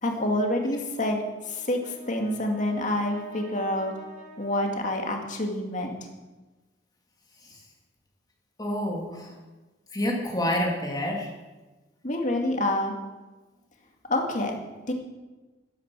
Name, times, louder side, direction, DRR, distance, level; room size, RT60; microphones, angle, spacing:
voice 1, 0.0-4.0 4.4-6.0 12.0-12.9 14.1-14.5 14.9-15.0, left 1 dB, 45° left, 2 dB, 2.3 m, -27 dB
Brass instrument, 1.3-5.7, right 2 dB, 40° right, 2.9 m, -48 dB
voice 2, 8.6-9.3 9.9-11.3, left 1 dB, 20° left, -1 dB, 2.7 m, -28 dB
13.0 x 12.5 x 6.2 m, 1.2 s
head